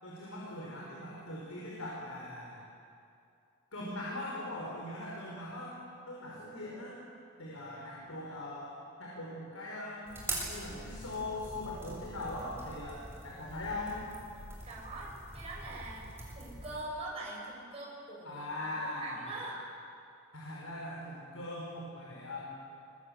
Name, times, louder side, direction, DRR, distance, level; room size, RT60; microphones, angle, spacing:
voice 1, 0.0-2.6 3.7-5.8 6.0-7.0 7.4-14.0 18.2-19.3 20.3-22.6, left 1 dB, 85° left, -4 dB, 5.5 m, -41 dB
sound 1, 10.1-16.8, right 2 dB, 10° right, 7.0 m, -44 dB
voice 2, 14.6-18.5 18.8-19.6, right 2 dB, 30° right, -4 dB, 7.6 m, -43 dB
26.0 x 23.0 x 8.5 m, 2.5 s
head